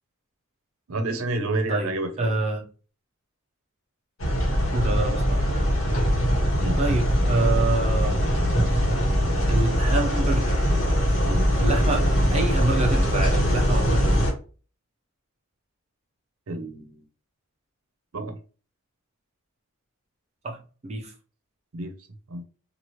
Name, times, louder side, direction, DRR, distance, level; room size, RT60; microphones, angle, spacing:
voice 1, 0.9-2.3 6.6-6.8 11.2-11.5 16.5-17.0 18.1-18.4 21.7-21.9 22.3-22.4, right 2 dB, 80° right, 0.6 m, -29 dB
voice 2, 1.7-2.6 4.7-5.6 6.8-8.2 9.5-10.7 11.6-14.3 20.4-20.6 20.8-21.1, right 2 dB, 30° right, 0.5 m, -27 dB
sound 1, 4.2-14.3, equal, 65° left, 1.1 m, -22 dB
2.9 x 2.4 x 3.0 m
head